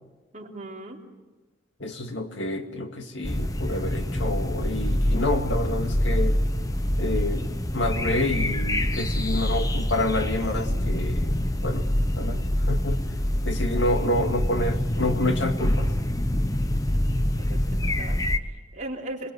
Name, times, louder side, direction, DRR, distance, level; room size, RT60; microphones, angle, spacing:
voice 1, 0.3-1.0 17.5-19.3, right 1 dB, 40° right, -1 dB, 3.3 m, -38 dB
voice 2, 1.8-6.4 7.0-7.5 7.7-11.3 11.6-11.9 12.2-13.0 13.4-15.9, left 1 dB, 70° left, 5 dB, 2.1 m, -28 dB
sound 1, 3.2-18.4, left 1 dB, 20° left, 0.9 m, -25 dB
26.5 x 20.5 x 7.9 m, 1.2 s
head